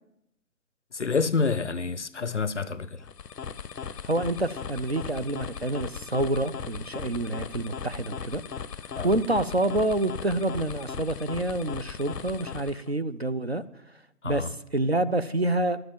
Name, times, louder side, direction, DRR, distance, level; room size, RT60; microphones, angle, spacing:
voice 1, 0.9-3.0 8.9-9.2 14.2-14.5, left 4 dB, 50° left, 0.5 m, -28 dB
sound 1, 3.0-12.9, left 7 dB, 85° left, 0.7 m, -38 dB
voice 2, 4.0-8.4 9.0-13.6 14.2-15.8, right 2 dB, 45° right, 0.5 m, -27 dB
11.5 x 7.8 x 8.9 m
figure-of-eight pair, 150°, 47 cm